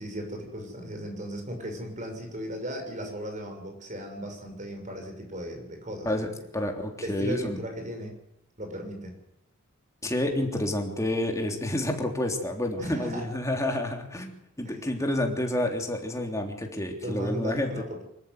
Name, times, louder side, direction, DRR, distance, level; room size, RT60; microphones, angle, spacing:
voice 1, 0.0-6.1 7.0-8.2 8.6-9.1 12.8-13.3 14.6-14.8 17.0-18.0, equal, 35° right, 4 dB, 6.6 m, -36 dB
voice 2, 6.5-7.6 10.0-17.7, left 1 dB, 15° left, 2 dB, 3.4 m, -29 dB
25.0 x 14.0 x 9.4 m, 0.78 s
head